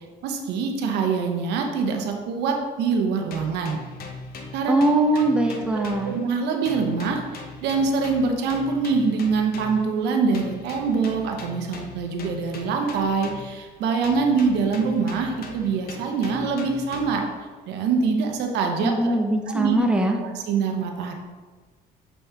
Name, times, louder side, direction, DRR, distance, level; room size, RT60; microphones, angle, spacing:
voice 1, 0.2-3.8 4.5-4.7 5.1-5.2 5.7-17.3 17.7-19.1 19.5-19.8 20.2-21.1, right 5 dB, 85° right, 3 dB, 0.9 m, -24 dB
sound 1, 3.3-6.4 6.7-9.9 10.3-13.7 14.0-17.4, left 4 dB, 65° left, 0.9 m, -40 dB
voice 2, 4.7-6.2 18.8-20.2, right 2 dB, 5° right, 2 dB, 0.7 m, -21 dB
7.4 x 4.2 x 3.5 m, 1.4 s
cardioid pair, 110°, 17 cm